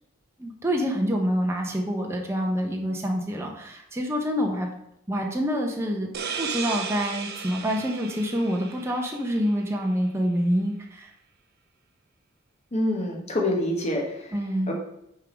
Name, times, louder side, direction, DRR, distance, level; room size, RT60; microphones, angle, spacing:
voice 1, 0.4-4.7 5.1-11.1 14.3-14.7, equal, 15° right, 0 dB, 0.7 m, -27 dB
sound 1, 6.1-9.6, right 6 dB, 50° right, 0.6 m, -35 dB
voice 2, 12.7-14.3 14.7-14.8, left 1 dB, 35° left, -1 dB, 1.2 m, -26 dB
6.2 x 3.6 x 5.0 m, 0.76 s
head